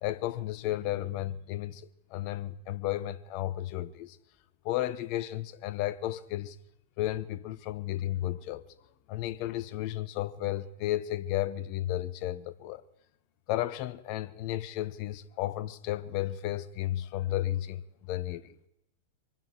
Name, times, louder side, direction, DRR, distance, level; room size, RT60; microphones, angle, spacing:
voice 1, 0.0-4.2 4.6-6.6 7.0-8.6 9.1-12.8 13.5-17.8 18.1-18.5, left 14 dB, 50° left, 0.9 m, -33 dB
24.5 x 11.0 x 4.6 m
hypercardioid pair, 105°, 0 cm